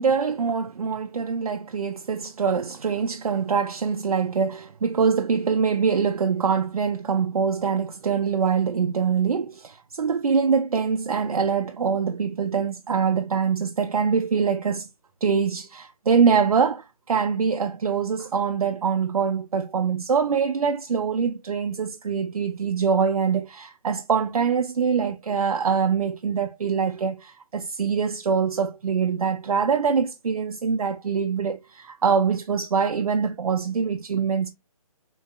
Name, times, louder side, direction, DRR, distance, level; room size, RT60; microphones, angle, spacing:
voice 1, 0.0-14.9 15.2-34.5, right 6 dB, 75° right, 0.5 m, -24 dB
3.7 x 2.7 x 2.2 m
figure-of-eight pair, 150°, 19 cm